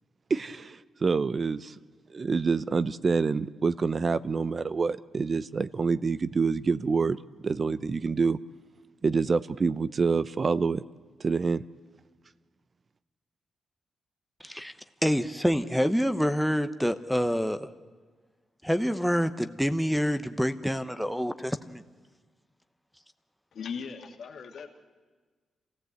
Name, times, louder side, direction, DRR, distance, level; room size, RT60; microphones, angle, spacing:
voice 1, 0.3-1.7 2.1-7.2 7.4-8.4 9.0-10.8 11.2-11.6, right 4 dB, 45° right, 15 dB, 0.6 m, -27 dB
voice 2, 15.0-17.7 18.6-21.8, equal, ahead, 10 dB, 0.9 m, -27 dB
voice 3, 23.5-24.7, left 6 dB, 75° left, 4 dB, 2.0 m, -38 dB
27.0 x 15.5 x 8.0 m, 1.4 s
cardioid pair, 70°, 0 cm